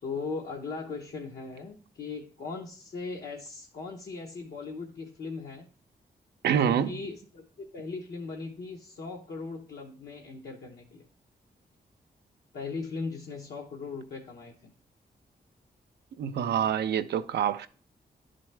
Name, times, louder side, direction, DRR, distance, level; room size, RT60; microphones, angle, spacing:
voice 1, 0.0-5.7 6.5-11.0 12.5-14.7, left 4 dB, 70° left, 0.9 m, -38 dB
voice 2, 6.4-7.0 16.2-17.7, right 9 dB, 90° right, 0.4 m, -26 dB
10.0 x 4.0 x 3.2 m
cardioid pair, 100°, 17 cm